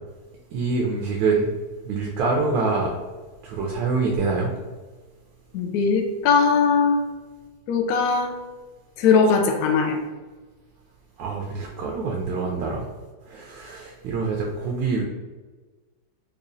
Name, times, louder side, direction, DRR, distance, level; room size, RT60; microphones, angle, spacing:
voice 1, 0.5-1.5 1.9-2.9 3.4-4.5 11.2-12.8 13.3-15.0, right 4 dB, 75° right, 0 dB, 1.2 m, -25 dB
voice 2, 5.5-7.0 7.7-8.3 9.0-10.0, left 5 dB, 75° left, 3 dB, 0.9 m, -19 dB
4.8 x 2.4 x 2.5 m, 1.3 s
omnidirectional pair, 2.1 m